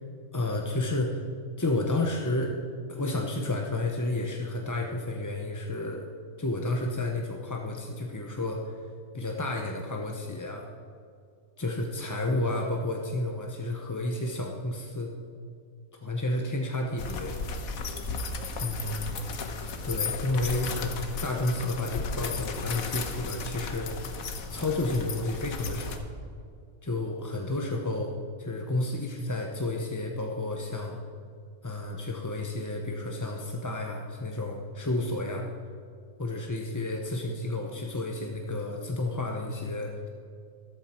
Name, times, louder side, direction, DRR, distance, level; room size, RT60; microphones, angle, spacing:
voice 1, 0.3-1.2 1.6-2.5 2.9-6.1 6.4-8.6 9.1-10.7 11.6-15.1 16.0-17.4 18.6-19.1 19.8-24.2 24.5-26.0 26.8-28.1 28.4-31.0 31.6-35.5 36.2-40.1, left 2 dB, 20° left, 1 dB, 0.6 m, -31 dB
sound 1, 17.0-26.0, left 4 dB, 85° left, 1.5 m, -35 dB
13.5 x 12.5 x 4.4 m, 2.3 s
omnidirectional pair, 1.4 m